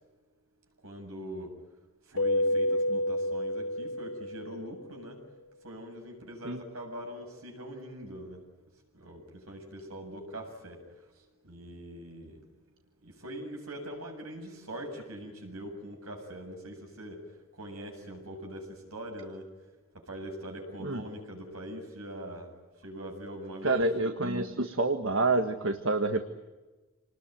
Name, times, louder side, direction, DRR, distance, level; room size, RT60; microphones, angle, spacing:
voice 1, 0.8-1.5 2.1-5.2 5.6-8.4 8.9-10.8 11.4-12.4 13.0-17.2 17.5-19.5 20.1-22.5 22.8-23.8, right 1 dB, 75° right, 2 dB, 7.8 m, -42 dB
Keyboard (musical), 2.2-4.7, left 1 dB, 85° left, 4.1 m, -29 dB
voice 2, 23.6-26.2, right 2 dB, 60° right, 7 dB, 1.6 m, -28 dB
27.5 x 20.0 x 9.3 m, 1.2 s
head